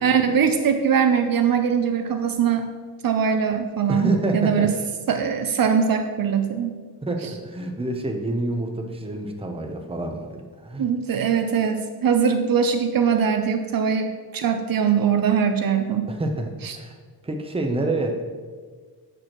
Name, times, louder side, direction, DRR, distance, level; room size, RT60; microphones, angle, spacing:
voice 1, 0.0-2.7 3.0-4.7 5.1-6.8 10.8-16.1 16.6-16.8, right 7 dB, 60° right, 7 dB, 0.6 m, -21 dB
voice 2, 3.9-4.7 7.0-10.9 16.1-17.0 17.2-18.3, right 2 dB, 15° right, 3 dB, 0.7 m, -27 dB
8.9 x 6.2 x 3.0 m, 1.5 s
wide cardioid pair, 135°, 39 cm